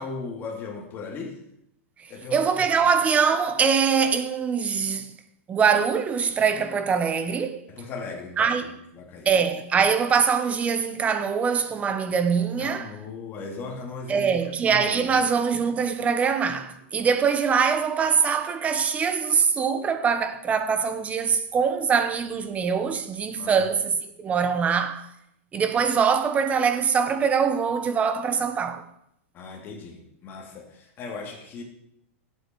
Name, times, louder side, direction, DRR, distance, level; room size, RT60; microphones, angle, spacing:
voice 1, 0.0-1.4 2.1-2.6 7.7-9.3 12.6-15.1 23.4-23.7 29.3-31.6, left 3 dB, 30° left, 2.9 m, -37 dB
voice 2, 2.3-5.1 5.5-7.7 8.4-8.7 9.2-12.9 14.1-25.0 25.5-28.8, right 6 dB, 20° right, 1.0 m, -23 dB
16.0 x 8.0 x 4.7 m
supercardioid pair, 145°, 7 cm